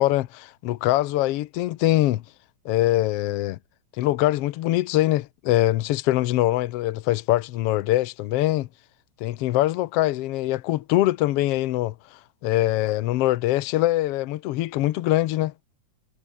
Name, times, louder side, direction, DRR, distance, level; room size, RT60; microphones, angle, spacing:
voice 1, 0.0-2.2 2.6-3.6 4.0-8.7 9.2-11.9 12.4-15.5, left 16 dB, 85° left, 1.3 m, -23 dB
omnidirectional pair, 3.6 m